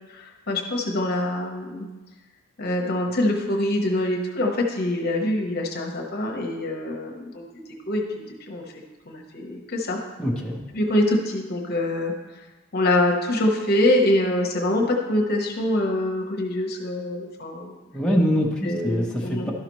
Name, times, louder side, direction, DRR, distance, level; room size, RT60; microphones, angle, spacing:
voice 1, 0.1-1.9 2.6-7.4 7.9-8.0 8.5-8.6 9.1-10.0 10.7-12.1 12.7-17.8 18.6-19.5, left 1 dB, 50° left, 1 dB, 0.9 m, -24 dB
voice 2, 10.2-10.6 17.9-19.5, equal, 5° left, -4 dB, 0.9 m, -24 dB
12.0 x 5.7 x 3.0 m, 1.2 s
head